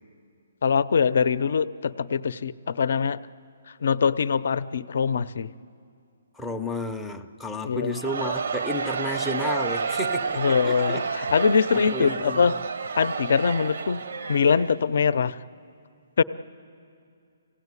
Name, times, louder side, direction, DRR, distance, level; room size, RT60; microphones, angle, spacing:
voice 1, 0.6-3.2 3.8-5.5 7.6-8.0 10.3-12.5 13.0-14.0 14.3-15.4 16.2-16.3, left 6 dB, 60° left, 16 dB, 0.6 m, -23 dB
voice 2, 6.4-11.3 11.6-11.7 11.9-12.5, left 1 dB, 5° left, 3 dB, 0.5 m, -32 dB
Crowd, 7.9-15.2, right 5 dB, 70° right, 0.8 m, -30 dB
25.0 x 17.0 x 9.7 m, 2.4 s
hypercardioid pair, 175°, 0 cm